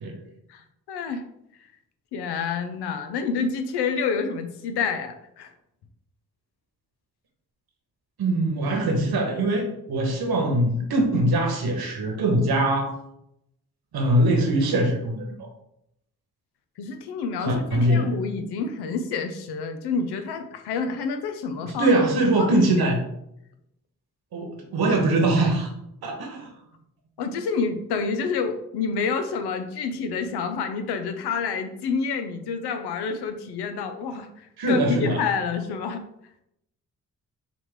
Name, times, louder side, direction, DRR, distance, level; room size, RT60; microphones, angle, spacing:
voice 1, 0.5-1.2 2.1-5.5 16.8-22.0 22.4-22.9 27.2-34.3 34.7-36.0, left 5 dB, 85° left, 7 dB, 0.7 m, -28 dB
voice 2, 8.2-12.9 13.9-15.5 17.4-18.1 21.6-23.0 24.3-25.7 26.0-26.5 34.6-35.2, right 1 dB, 70° right, 2 dB, 1.4 m, -22 dB
5.9 x 2.5 x 3.6 m, 0.78 s
supercardioid pair, 50°, 38 cm